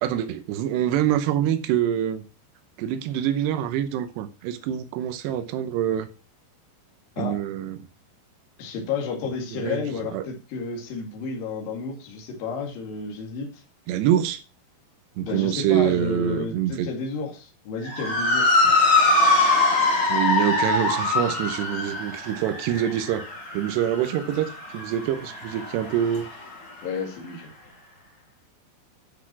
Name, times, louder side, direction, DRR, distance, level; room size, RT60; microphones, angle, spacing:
voice 1, 0.0-2.2 2.8-6.1 7.2-7.8 9.5-9.8 10.1-10.3 13.9-14.4 15.2-16.9 20.1-23.3 23.5-26.3, right 11 dB, 85° right, 3.0 m, -25 dB
voice 2, 8.6-13.6 15.2-18.6 26.8-27.5, left 5 dB, 60° left, 3.8 m, -31 dB
Motor vehicle (road) / Siren, 17.8-26.4, left 2 dB, 40° left, 4.5 m, -23 dB
11.0 x 6.0 x 6.0 m
omnidirectional pair, 4.8 m